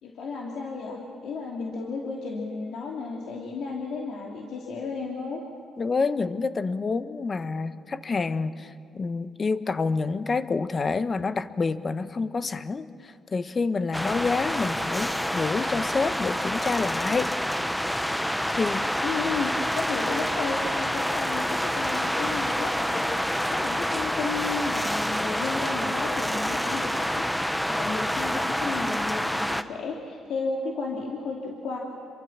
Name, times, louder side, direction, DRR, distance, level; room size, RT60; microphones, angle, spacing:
voice 1, 0.0-5.4 19.0-31.8, left 4 dB, 75° left, -1 dB, 2.8 m, -33 dB
voice 2, 5.8-17.3 18.5-18.9, left 4 dB, 35° left, 12 dB, 1.1 m, -28 dB
sound 1, 13.9-29.6, equal, 5° left, 0.9 m, -27 dB
27.5 x 23.5 x 7.4 m, 2.4 s
cardioid pair, 90°, 0 cm